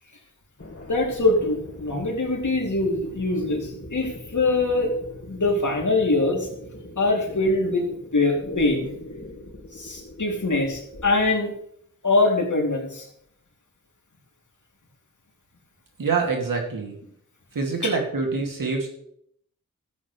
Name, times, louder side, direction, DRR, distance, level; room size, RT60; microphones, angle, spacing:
sound 1, 0.6-11.3, left 1 dB, 45° left, 3.2 m, -41 dB
voice 1, 0.9-4.9 5.3-6.5 7.0-7.8 8.1-8.9 9.7-11.5 12.0-13.1, left 2 dB, 65° left, 0 dB, 2.9 m, -23 dB
voice 2, 16.0-16.9 17.5-18.9, right 4 dB, 80° right, 1 dB, 2.4 m, -25 dB
13.0 x 8.6 x 3.2 m, 0.70 s
cardioid pair, 45°, 33 cm